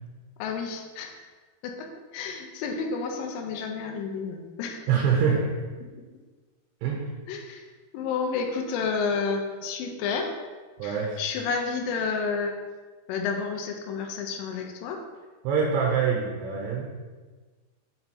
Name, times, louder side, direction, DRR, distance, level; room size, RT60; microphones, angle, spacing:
voice 1, 0.4-1.2 1.6-4.9 7.3-7.7 7.9-10.3 10.8-12.6 13.1-15.0, left 5 dB, 85° left, 3 dB, 2.0 m, -30 dB
voice 2, 4.9-5.5 6.8-7.0 10.8-11.2 15.4-16.9, right 6 dB, 85° right, -1 dB, 2.9 m, -24 dB
6.7 x 4.5 x 4.2 m, 1.4 s
omnidirectional pair, 4.8 m